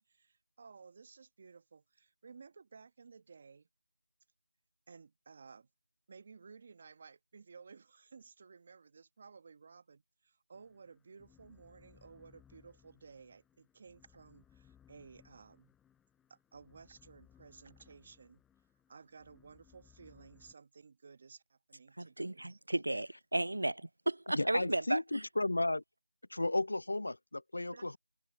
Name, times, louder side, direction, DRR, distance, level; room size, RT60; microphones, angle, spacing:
voice 1, 0.0-3.7 4.9-5.7 6.1-15.7 16.3-18.4 18.9-22.6 24.7-24.8 27.7-28.0, right 5 dB, 30° right, 1.1 m, -56 dB
sound 1, 10.5-20.5, left 9 dB, 5° left, 4.0 m, -66 dB
voice 2, 22.0-25.2, right 1 dB, 80° right, 0.3 m, -34 dB
voice 3, 24.3-25.8 26.3-28.0, left 2 dB, 70° left, 0.4 m, -33 dB
figure-of-eight pair, 170°, 0 cm